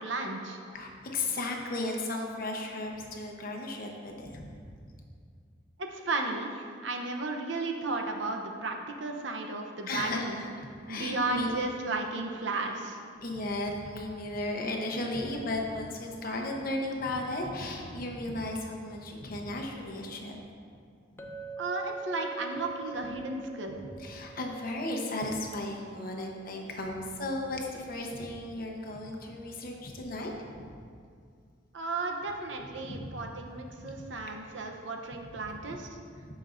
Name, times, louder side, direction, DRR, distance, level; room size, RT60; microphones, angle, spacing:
voice 1, 0.0-0.6 5.9-10.4 10.9-13.0 21.6-23.8 31.7-35.9, right 3 dB, 75° right, 3 dB, 0.7 m, -34 dB
voice 2, 0.7-4.5 9.9-11.5 13.2-20.4 21.1-21.3 24.0-30.6 32.8-33.1 33.8-33.9 35.4-35.8, left 2 dB, 50° left, 1 dB, 0.9 m, -35 dB
Chink clink, 21.2-25.4, right 4 dB, 10° left, 0.5 m, -43 dB
14.0 x 5.3 x 2.6 m, 2.2 s
head